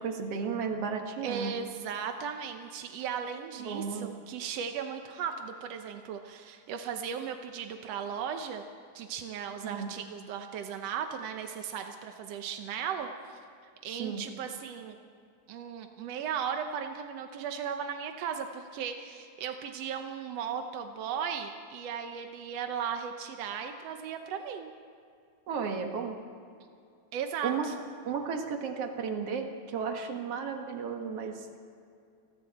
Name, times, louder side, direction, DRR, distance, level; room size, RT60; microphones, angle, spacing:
voice 1, 0.0-1.5 3.6-4.1 9.6-9.9 13.9-14.2 25.5-26.2 27.4-27.7 28.1-31.5, right 6 dB, 50° right, 4 dB, 2.2 m, -34 dB
voice 2, 1.2-8.7 8.9-13.4 13.8-15.0 15.5-24.7 27.1-27.7, right 7 dB, 75° right, 5 dB, 1.5 m, -36 dB
29.5 x 21.0 x 4.3 m, 2.4 s
omnidirectional pair, 4.1 m